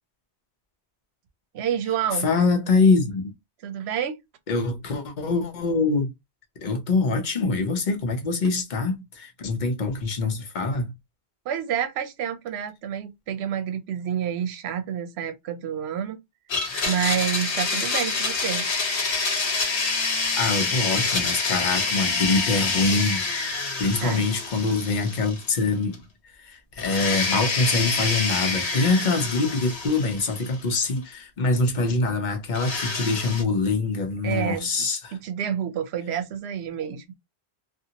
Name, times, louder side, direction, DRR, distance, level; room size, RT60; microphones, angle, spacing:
voice 1, 1.5-2.4 3.6-4.2 11.5-16.2 16.9-18.7 24.0-24.3 34.2-34.7 35.2-37.2, right 9 dB, 75° right, 0.9 m, -28 dB
voice 2, 2.2-3.3 4.5-6.1 6.6-10.9 20.1-23.2 23.8-26.0 26.4-35.2, left 3 dB, 50° left, 0.8 m, -24 dB
Domestic sounds home sounds, 16.5-25.7 25.9-26.0 26.8-30.7 32.5-33.4, left 4 dB, 75° left, 1.1 m, -27 dB
2.7 x 2.5 x 2.7 m
omnidirectional pair, 1.1 m